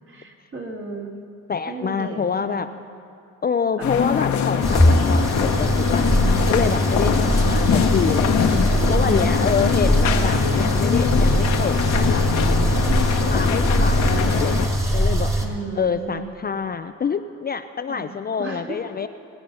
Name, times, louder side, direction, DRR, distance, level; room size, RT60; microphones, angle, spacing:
voice 1, 0.1-1.1 1.7-2.7 3.8-4.0 7.3-7.5 9.0-10.1 13.0-13.3 15.4-16.2 17.9-18.1 18.4-18.8, right 2 dB, 45° right, 0 dB, 2.6 m, -34 dB
voice 2, 1.5-2.7 3.4-8.6 8.9-12.2 13.3-15.3 15.7-19.1, left 6 dB, 30° left, 9 dB, 0.5 m, -26 dB
sound 1, 3.8-14.7, left 7 dB, 70° left, 1.2 m, -23 dB
sound 2, 4.6-15.5, equal, 10° right, 2.0 m, -21 dB
21.5 x 9.2 x 5.5 m, 2.5 s
cardioid pair, 90°, 30 cm